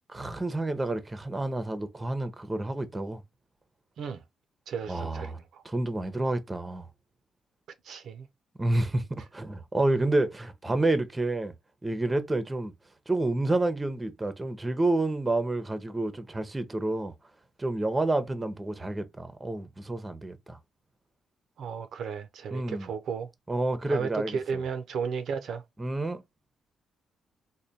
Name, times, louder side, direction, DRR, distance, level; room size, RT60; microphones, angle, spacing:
voice 1, 0.1-3.2 4.9-5.4 5.6-6.9 8.6-11.5 11.8-12.7 13.1-17.1 17.6-20.6 22.5-22.9 23.5-24.6 25.8-26.2, right 2 dB, 15° right, 0.7 m, -29 dB
voice 2, 4.7-5.6 7.8-8.3 21.6-23.3 23.9-25.6, right 6 dB, 65° right, 0.5 m, -34 dB
3.3 x 2.2 x 4.0 m
cardioid pair, 90°, 0 cm